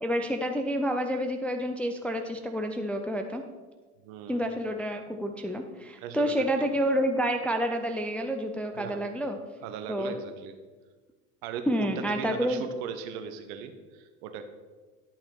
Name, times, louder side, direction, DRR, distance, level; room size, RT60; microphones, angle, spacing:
voice 1, 0.0-3.4 4.3-9.4 9.9-10.1 11.7-12.6, equal, 5° left, 5 dB, 0.4 m, -29 dB
voice 2, 4.0-4.4 6.0-6.7 8.7-9.0 9.6-10.5 11.4-14.4, right 7 dB, 60° right, 8 dB, 1.1 m, -38 dB
10.5 x 6.0 x 4.5 m, 1.3 s
hypercardioid pair, 75°, 48 cm